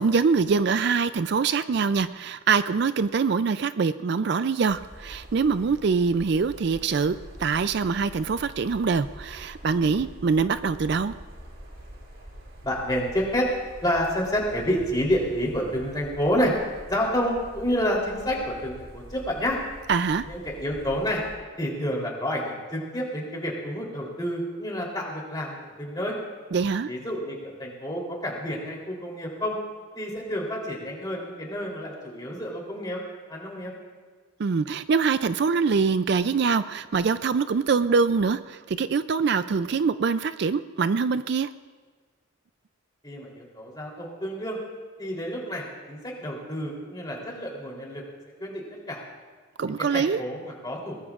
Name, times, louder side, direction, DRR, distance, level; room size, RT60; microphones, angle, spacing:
voice 1, 0.0-11.1 19.9-20.3 26.5-26.9 34.4-41.5 49.6-50.2, right 5 dB, 55° right, 12 dB, 0.4 m, -24 dB
sound 1, 4.7-21.3, equal, 90° right, 5.0 m, -45 dB
voice 2, 12.6-13.5 13.8-16.5 16.9-19.6 20.2-21.2 21.6-26.1 26.9-29.6 29.9-33.0 33.3-33.7 43.0-44.6 45.0-48.0 48.4-49.0 49.6-51.0, equal, 20° left, -2 dB, 3.3 m, -29 dB
22.5 x 19.5 x 2.5 m, 1.5 s
head